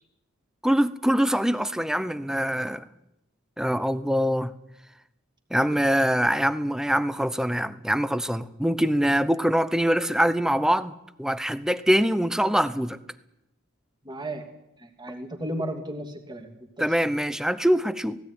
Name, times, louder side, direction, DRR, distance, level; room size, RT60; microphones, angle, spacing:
voice 1, 0.6-2.9 3.6-4.5 5.5-13.0 16.8-18.2, equal, 5° right, 14 dB, 0.8 m, -24 dB
voice 2, 14.0-14.5 14.8-16.9, right 1 dB, 20° right, 3 dB, 2.8 m, -34 dB
17.5 x 17.0 x 9.8 m, 0.86 s
head